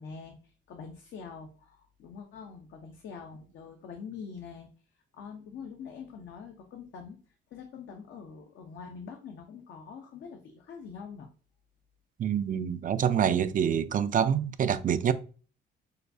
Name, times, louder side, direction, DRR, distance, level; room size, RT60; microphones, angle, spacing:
voice 1, 0.0-4.7 4.9-11.3, left 6 dB, 70° left, 0.7 m, -45 dB
voice 2, 12.2-15.1, right 8 dB, 45° right, 0.4 m, -26 dB
6.6 x 2.3 x 2.6 m
cardioid pair, 90°, 20 cm